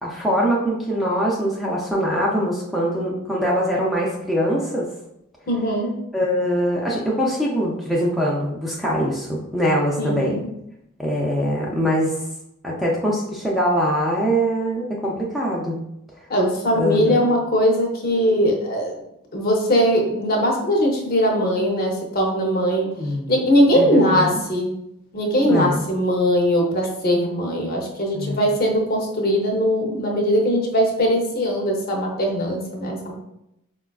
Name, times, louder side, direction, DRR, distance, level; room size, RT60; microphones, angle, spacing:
voice 1, 0.0-4.8 6.1-10.4 11.0-12.2 12.6-15.8 16.7-17.2 23.0-23.3 23.7-24.4 25.4-25.9 28.1-28.5, equal, ahead, -4 dB, 0.3 m, -23 dB
voice 2, 5.5-5.9 10.0-10.5 16.3-18.9 19.3-22.9 23.3-24.7 25.1-33.1, equal, 45° left, 0 dB, 0.6 m, -20 dB
4.1 x 2.3 x 2.3 m, 0.81 s
head